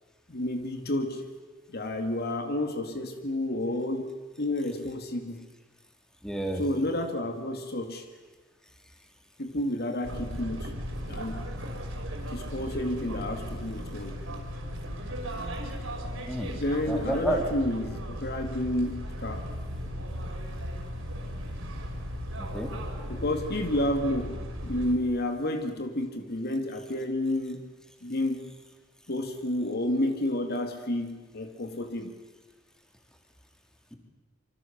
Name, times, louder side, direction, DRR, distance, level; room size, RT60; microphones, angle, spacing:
voice 1, 0.3-1.2 1.7-4.1 4.4-5.5 6.5-8.1 9.4-10.7 11.1-11.4 12.3-14.1 16.4-19.5 23.1-27.6 28.0-28.5 29.1-32.2, left 1 dB, 55° left, 6 dB, 2.2 m, -30 dB
voice 2, 6.2-6.6 16.3-16.6 16.9-17.4 22.4-22.7, right 1 dB, 5° left, 3 dB, 3.5 m, -30 dB
sound 1, 10.0-24.9, equal, 75° right, 5.7 m, -36 dB
27.0 x 25.0 x 7.3 m, 1.3 s
head